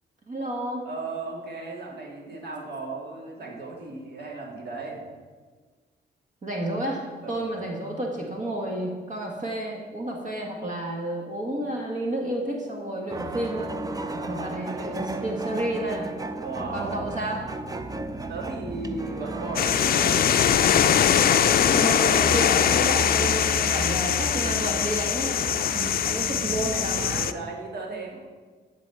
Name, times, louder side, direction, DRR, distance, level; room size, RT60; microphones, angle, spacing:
voice 1, 0.3-0.8 6.4-7.0 7.3-13.7 14.1-16.1 16.7-17.5 21.6-27.2, right 1 dB, 45° right, 0 dB, 1.6 m, -31 dB
voice 2, 0.8-5.0 7.2-7.4 14.2-14.5 16.4-16.9 18.3-20.4 27.0-28.2, right 3 dB, 65° right, -2 dB, 2.6 m, -36 dB
sound 1, 13.1-27.3, right 2 dB, 20° right, 0.6 m, -34 dB
sound 2, 19.6-27.3, left 9 dB, 55° left, 0.4 m, -22 dB
11.5 x 4.1 x 6.9 m, 1.4 s
cardioid pair, 100°, 18 cm